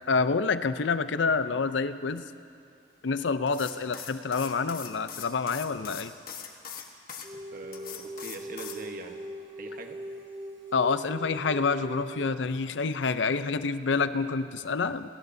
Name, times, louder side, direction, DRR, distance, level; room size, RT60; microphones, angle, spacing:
voice 1, 0.1-2.3 3.0-6.1 10.7-15.1, left 4 dB, 75° left, 12 dB, 0.6 m, -27 dB
sound 1, 3.5-7.3 7.7-8.8, left 7 dB, 50° left, 1.2 m, -41 dB
sound 2, 7.2-12.2, right 1 dB, 30° right, 4.7 m, -41 dB
voice 2, 7.3-9.2 9.6-10.0, right 2 dB, 50° right, 4 dB, 1.2 m, -43 dB
27.5 x 18.5 x 2.7 m, 2.4 s
head